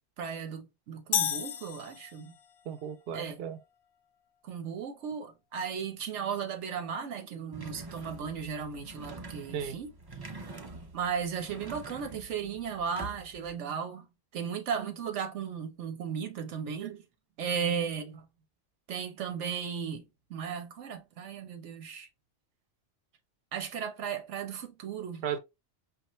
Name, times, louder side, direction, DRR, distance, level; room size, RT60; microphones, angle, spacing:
voice 1, 0.2-2.4 3.1-3.4 4.4-9.9 10.9-14.1 14.3-17.0 17.4-18.3 18.9-22.1 23.5-25.2, right 7 dB, 90° right, 1.1 m, -36 dB
sound 1, 1.1-2.5, left 10 dB, 60° left, 0.6 m, -32 dB
voice 2, 2.7-3.6 9.5-9.8 25.2-25.4, right 8 dB, 65° right, 0.8 m, -35 dB
sound 2, 7.5-13.5, right 2 dB, 30° right, 0.4 m, -46 dB
4.9 x 2.4 x 3.0 m
omnidirectional pair, 1.2 m